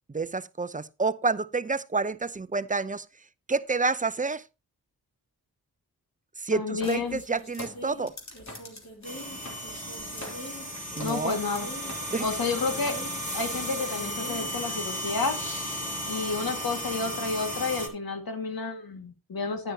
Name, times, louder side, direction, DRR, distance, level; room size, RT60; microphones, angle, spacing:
voice 1, 0.1-3.1 3.5-4.4 6.4-8.1 11.0-11.4 12.1-12.2, right 4 dB, 20° right, 0.6 m, -29 dB
voice 2, 6.5-7.2 11.0-11.7 12.2-13.0 13.3-15.4 16.1-19.7, left 4 dB, 70° left, 2.2 m, -30 dB
sound 1, 6.8-14.7 15.4-15.5 15.7-16.1 16.8-16.9, equal, 45° left, 3.4 m, -43 dB
sound 2, 9.0-17.9, equal, 20° left, 3.3 m, -35 dB
10.5 x 9.6 x 2.9 m
cardioid pair, 45°, 37 cm